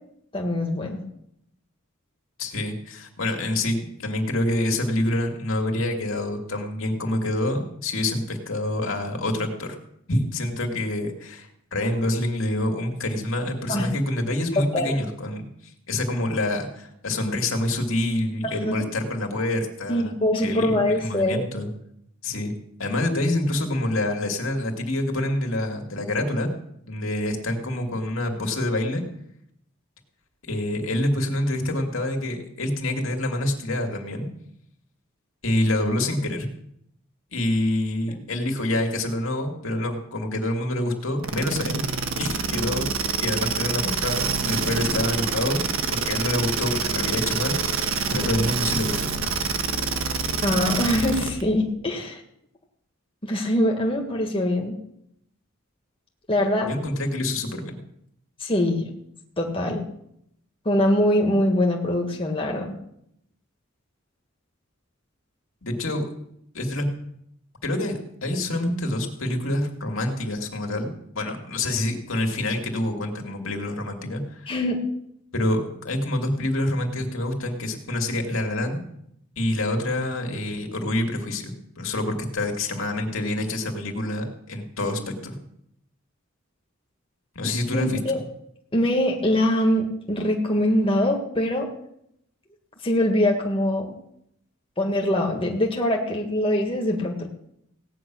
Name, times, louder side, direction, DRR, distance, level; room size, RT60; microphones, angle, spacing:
voice 1, 0.3-1.1 13.7-13.9 14.7-15.0 18.7-18.8 19.9-21.5 50.4-52.2 53.2-54.7 56.3-56.7 58.4-58.9 59.4-59.9 60.7-62.7 74.5-74.8 87.4-88.2 88.7-91.7 92.8-93.9 94.8-97.3, left 1 dB, 25° left, 0 dB, 1.8 m, -23 dB
voice 2, 2.4-9.8 10.1-20.1 20.4-21.7 22.2-22.5 22.8-26.5 26.8-29.0 30.4-34.3 35.4-36.5 37.3-41.8 42.2-42.9 43.2-49.1 56.7-57.8 65.6-66.0 66.5-66.9 67.6-74.5 75.3-78.8 79.4-85.4 87.3-88.0, left 1 dB, 70° left, 3 dB, 2.5 m, -27 dB
sound 1, 41.2-51.4, right 5 dB, 75° right, 1.5 m, -26 dB
17.0 x 9.5 x 6.2 m, 0.76 s
head